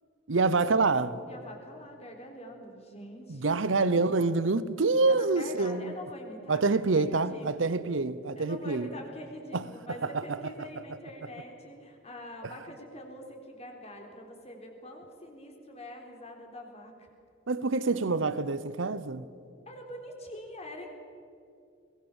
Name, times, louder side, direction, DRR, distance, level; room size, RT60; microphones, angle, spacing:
voice 1, 0.3-1.2 3.3-5.9 6.5-8.9 9.5-9.6 10.0-10.1 17.5-19.3, right 3 dB, 70° right, 0.8 m, -26 dB
voice 2, 1.3-3.6 5.1-7.8 8.4-17.1 19.7-20.9, left 1 dB, 35° left, 3.7 m, -45 dB
22.5 x 19.5 x 7.3 m
head